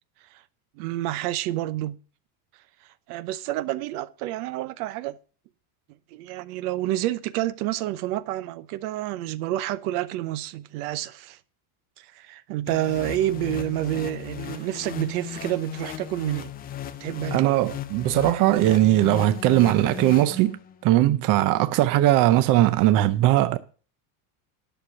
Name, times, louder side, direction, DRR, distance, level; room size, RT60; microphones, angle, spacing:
voice 1, 0.8-2.0 3.1-5.1 6.1-11.4 12.0-16.5 17.0-17.6, right 14 dB, 70° right, 0.9 m, -29 dB
sound 1, 12.7-20.8, left 10 dB, 20° left, 0.4 m, -37 dB
voice 2, 17.3-23.6, right 14 dB, 45° right, 0.6 m, -20 dB
10.5 x 6.5 x 6.5 m
supercardioid pair, 150°, 47 cm